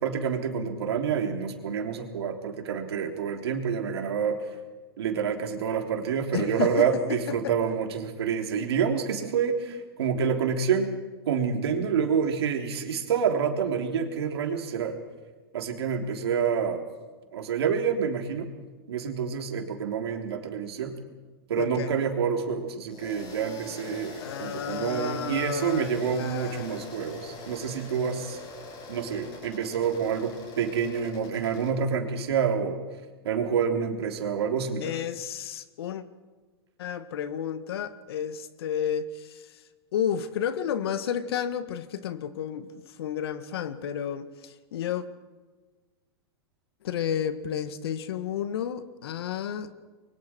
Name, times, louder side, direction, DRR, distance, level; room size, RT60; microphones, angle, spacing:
voice 1, 0.0-4.4 5.0-10.9 11.3-15.0 15.5-16.8 17.3-18.5 18.9-21.0 21.5-28.4 28.9-32.8 33.2-34.9, right 7 dB, 80° right, 3 dB, 3.5 m, -28 dB
voice 2, 6.3-7.5 21.6-21.9 24.2-26.9 34.8-36.0 36.8-39.6 39.9-45.0 46.8-49.7, left 9 dB, 75° left, 11 dB, 1.8 m, -32 dB
sound 1, 22.9-31.7, left 3 dB, 40° left, 7.1 m, -43 dB
27.5 x 23.5 x 4.6 m, 1.3 s
hypercardioid pair, 125°, 13 cm